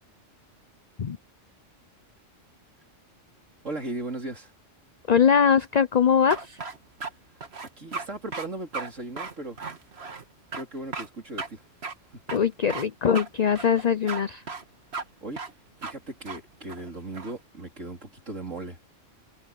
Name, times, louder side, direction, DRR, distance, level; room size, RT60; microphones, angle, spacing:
voice 1, 3.6-4.5 7.6-9.6 10.5-11.6 12.1-12.2 15.2-15.4 15.8-18.8, right 2 dB, 80° right, 4.6 m, -37 dB
voice 2, 5.1-6.6 12.3-14.4, left 7 dB, 45° left, 0.6 m, -22 dB
sound 1, 6.3-7.1 7.4-8.1 8.3-8.5 8.7-8.9 9.2-10.2 10.5-10.6 10.9-11.1 11.4-11.5 11.8-11.9 12.3-12.9 13.1-13.3 13.6-14.2 14.5-14.6 14.9-15.0 15.4-15.5 15.8-15.9 16.3-16.4 16.7-17.3, right 4 dB, 55° right, 1.9 m, -35 dB
omnidirectional pair, 1.3 m